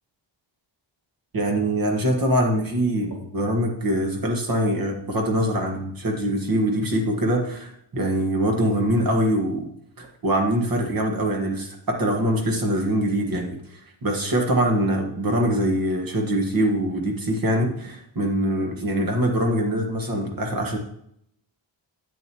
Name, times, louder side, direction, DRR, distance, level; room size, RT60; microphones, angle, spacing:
voice 1, 1.3-9.7 10.0-13.6 14.0-20.8, right 1 dB, 45° right, 1 dB, 1.8 m, -23 dB
10.5 x 8.8 x 3.0 m, 0.72 s
wide cardioid pair, 155°, 47 cm